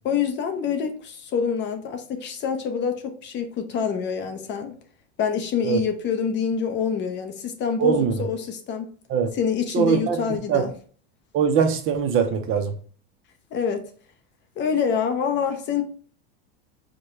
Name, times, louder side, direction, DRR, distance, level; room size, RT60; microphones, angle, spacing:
voice 1, 0.0-4.7 5.2-8.9 9.3-10.7 13.5-13.8 14.6-15.8, left 7 dB, 35° left, 0.6 m, -26 dB
voice 2, 7.8-8.2 9.1-9.3 9.7-10.2 10.5-10.7 11.3-12.7, right 7 dB, 40° right, 0.6 m, -21 dB
4.9 x 2.2 x 3.0 m
supercardioid pair, 115°, 34 cm